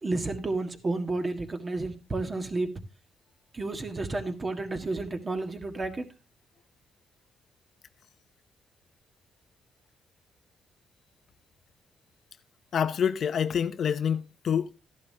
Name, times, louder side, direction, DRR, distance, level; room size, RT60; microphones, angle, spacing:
voice 1, 0.0-2.8 3.5-6.1, right 2 dB, 30° right, 1.6 m, -31 dB
voice 2, 12.7-14.7, left 8 dB, 55° left, 0.7 m, -27 dB
13.0 x 11.0 x 2.8 m
cardioid pair, 90°, 0 cm